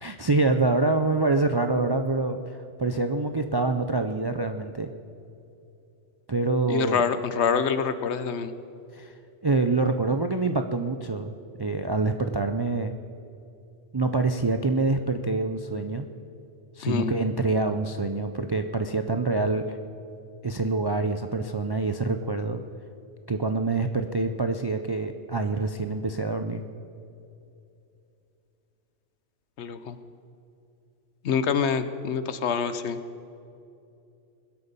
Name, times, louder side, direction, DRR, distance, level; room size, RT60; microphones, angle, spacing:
voice 1, 0.0-4.9 6.3-7.0 8.9-9.1 9.4-12.9 13.9-16.1 16.8-19.8 20.4-22.6 23.3-26.6, right 3 dB, 40° right, 7 dB, 0.3 m, -26 dB
voice 2, 6.7-8.5 16.8-17.2 29.6-30.0 31.2-33.0, left 6 dB, 70° left, 11 dB, 1.0 m, -26 dB
21.5 x 8.1 x 5.4 m, 2.7 s
omnidirectional pair, 1.2 m